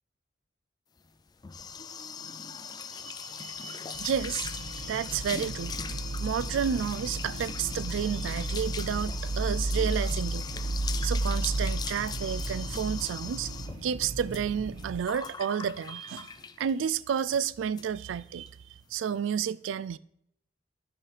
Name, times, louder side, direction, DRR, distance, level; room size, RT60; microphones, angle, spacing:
sound 1, 1.1-16.8 17.2-17.4 17.8-17.9 18.2-18.5, left 6 dB, 20° left, 0.3 m, -40 dB
voice 1, 2.9-5.8 6.2-10.5 11.0-13.5 13.8-16.3 16.6-18.5 18.9-20.0, right 8 dB, 85° right, 0.3 m, -31 dB
sound 2, 4.0-15.0, right 2 dB, 65° right, 0.7 m, -33 dB
13.0 x 5.6 x 3.2 m
head